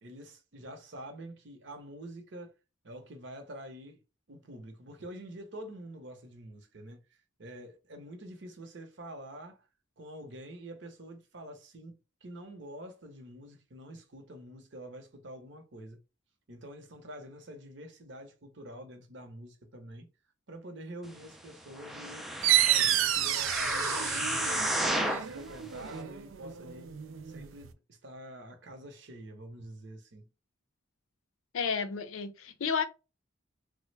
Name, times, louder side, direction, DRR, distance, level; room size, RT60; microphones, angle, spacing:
voice 1, 0.0-2.5 2.8-4.0 4.3-9.7 10.0-12.0 12.2-16.0 16.5-20.1 20.5-22.3 22.7-24.7 25.0-26.9 27.2-30.3, right 1 dB, 60° right, 0.8 m, -47 dB
sound 1, 21.8-25.3 25.9-26.0, right 1 dB, ahead, 0.3 m, -32 dB
sound 2, 22.4-27.7, right 12 dB, 75° right, 0.4 m, -30 dB
voice 2, 31.5-32.8, left 6 dB, 85° left, 0.5 m, -31 dB
3.2 x 2.1 x 3.2 m
head